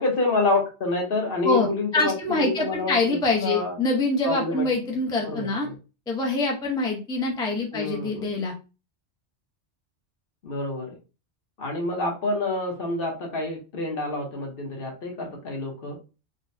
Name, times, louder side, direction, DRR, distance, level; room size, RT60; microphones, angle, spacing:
voice 1, 0.0-3.8 4.2-4.6 5.2-5.7 7.7-8.3 10.4-11.0 11.6-16.0, left 3 dB, 50° left, 1 dB, 1.0 m, -28 dB
voice 2, 1.9-5.7 6.1-8.5, left 2 dB, 5° left, -1 dB, 0.4 m, -25 dB
3.8 x 2.1 x 2.6 m, 0.32 s
omnidirectional pair, 1.2 m